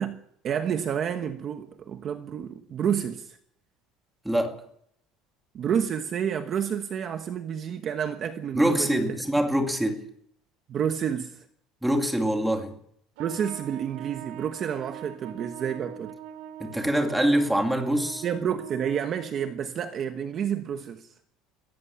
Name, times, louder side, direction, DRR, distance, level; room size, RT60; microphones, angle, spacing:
voice 1, 0.0-3.4 5.5-9.1 10.7-11.4 13.2-16.1 18.2-21.1, right 8 dB, 30° right, 1.1 m, -29 dB
voice 2, 4.2-4.6 8.5-10.0 11.8-12.7 16.6-18.2, right 1 dB, 5° right, 2.4 m, -24 dB
Trumpet, 13.2-19.7, right 9 dB, 75° right, 3.9 m, -43 dB
23.0 x 17.0 x 7.1 m
cardioid pair, 175°, 0 cm